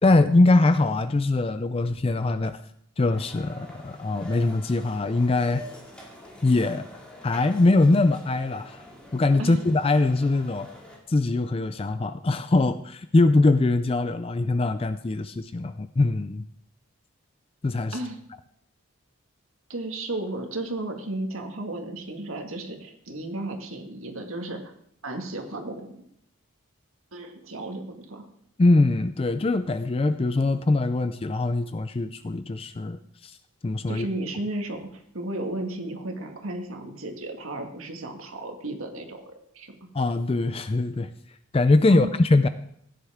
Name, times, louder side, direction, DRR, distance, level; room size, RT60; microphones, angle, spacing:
voice 1, 0.0-2.6 3.0-5.6 6.4-6.9 7.2-8.8 9.1-10.7 11.1-16.4 17.6-18.0 28.6-33.4 33.6-34.1 39.9-41.1 41.5-42.5, left 2 dB, 25° left, 11 dB, 0.4 m, -22 dB
sound 1, 3.1-11.0, equal, 5° left, 2.4 m, -46 dB
voice 2, 19.7-24.7 25.0-26.0 27.1-28.3 33.9-39.8 41.9-42.1, right 2 dB, 80° right, 3 dB, 1.9 m, -34 dB
16.0 x 10.0 x 3.6 m, 0.70 s
head